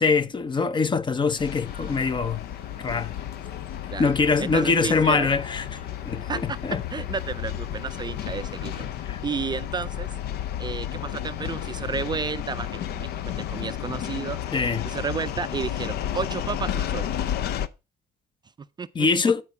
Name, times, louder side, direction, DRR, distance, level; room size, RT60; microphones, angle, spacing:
voice 1, 0.0-2.5 2.8-3.1 4.0-5.6 6.0-6.8 9.1-9.2 14.5-14.9 18.9-19.4, left 4 dB, 30° left, 0.7 m, -23 dB
sound 1, 1.4-17.7, left 10 dB, 70° left, 0.7 m, -32 dB
sound 2, 1.7-8.8, left 3 dB, 55° left, 5.5 m, -49 dB
voice 2, 4.4-5.3 6.3-6.6 6.9-10.1 10.6-14.4 14.8-17.1 18.6-19.3, right 5 dB, 25° right, 0.4 m, -32 dB
11.0 x 4.5 x 5.8 m
cardioid pair, 110°, 17 cm